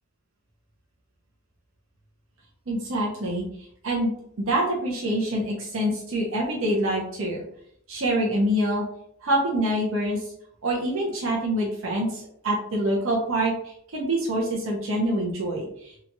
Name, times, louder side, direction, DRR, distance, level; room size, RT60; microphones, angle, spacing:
voice 1, 2.7-3.4 3.8-7.5 7.9-8.9 9.2-10.2 10.6-15.9, right 1 dB, 75° right, -2 dB, 0.7 m, -26 dB
2.9 x 2.3 x 2.7 m, 0.70 s
head